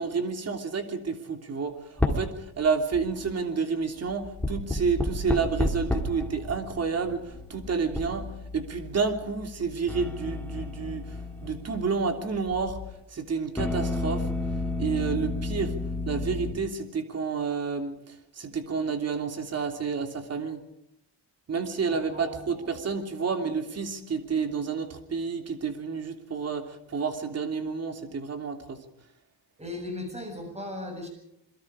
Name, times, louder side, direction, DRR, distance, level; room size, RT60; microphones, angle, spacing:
voice 1, 0.0-14.3 14.8-15.8 16.0-20.6 21.5-28.8, right 5 dB, 35° right, 5 dB, 3.1 m, -30 dB
sound 1, 2.0-2.4 2.6-3.3 4.1-12.9 13.6-16.5, left 2 dB, 5° left, 2.9 m, -31 dB
voice 2, 21.9-22.3 22.6-22.7 29.6-31.1, left 2 dB, 15° right, 4 dB, 7.8 m, -37 dB
28.0 x 22.5 x 5.0 m, 0.81 s
cardioid pair, 175°, 42 cm